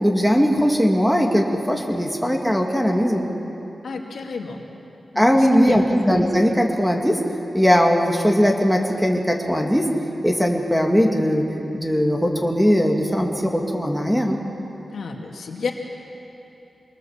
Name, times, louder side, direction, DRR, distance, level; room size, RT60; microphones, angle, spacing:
voice 1, 0.0-3.3 5.2-7.2 7.5-9.9 10.2-11.5 11.7-14.4, equal, ahead, 1 dB, 2.0 m, -19 dB
voice 2, 3.8-4.6 5.1-5.8 14.9-15.7, left 5 dB, 80° left, 2 dB, 2.2 m, -31 dB
24.5 x 20.0 x 7.3 m, 3.0 s
wide cardioid pair, 130°, 0 cm